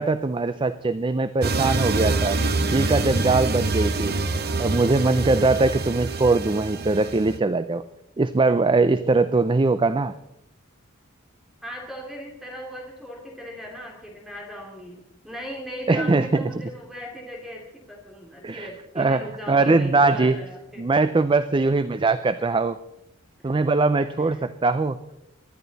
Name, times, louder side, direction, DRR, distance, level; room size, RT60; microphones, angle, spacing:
voice 1, 0.0-2.4 2.7-4.2 4.6-7.8 8.2-10.2 15.9-16.5 18.4-18.7 19.0-20.4 20.8-22.8 23.4-25.0, right 3 dB, 25° right, 13 dB, 0.4 m, -21 dB
sound 1, 1.4-7.4, right 3 dB, 50° right, 1.0 m, -25 dB
voice 2, 11.6-20.9 21.6-22.0 23.4-23.5 24.2-24.4, equal, ahead, -1 dB, 2.5 m, -38 dB
24.5 x 11.5 x 4.1 m, 0.83 s
head